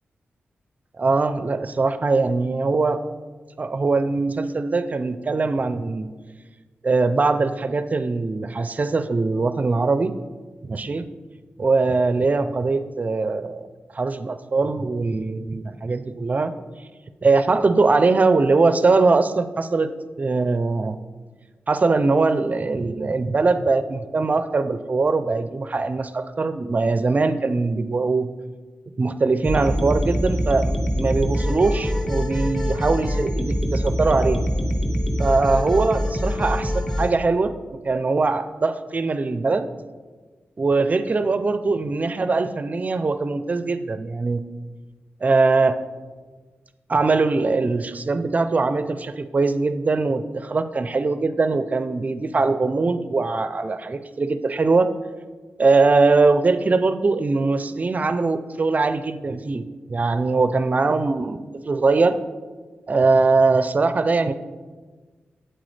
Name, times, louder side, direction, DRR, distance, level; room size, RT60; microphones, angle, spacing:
voice 1, 1.0-3.0 3.6-6.1 6.8-10.1 10.6-11.1 11.6-13.7 13.9-16.5 17.2-19.9 20.2-21.0 21.7-28.3 29.0-34.4 35.2-37.5 37.8-39.7 40.6-44.4 45.2-45.8 46.9-54.9 55.6-61.4 61.7-62.2 62.9-64.3, right 3 dB, 35° right, 11 dB, 0.5 m, -21 dB
sound 1, 29.4-37.1, equal, 10° left, 1.1 m, -24 dB
7.9 x 7.9 x 3.3 m, 1.4 s
cardioid pair, 75°, 4 cm